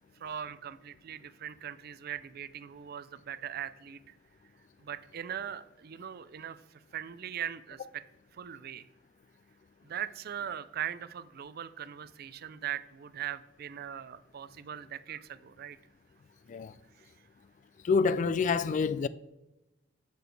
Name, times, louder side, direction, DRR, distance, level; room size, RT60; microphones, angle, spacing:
voice 1, 0.2-4.0 4.8-6.6 6.9-8.0 8.4-8.9 9.8-15.8, right 9 dB, 55° right, 0.4 m, -40 dB
voice 2, 17.8-19.1, left 5 dB, 40° left, 0.3 m, -27 dB
7.8 x 6.8 x 3.3 m
head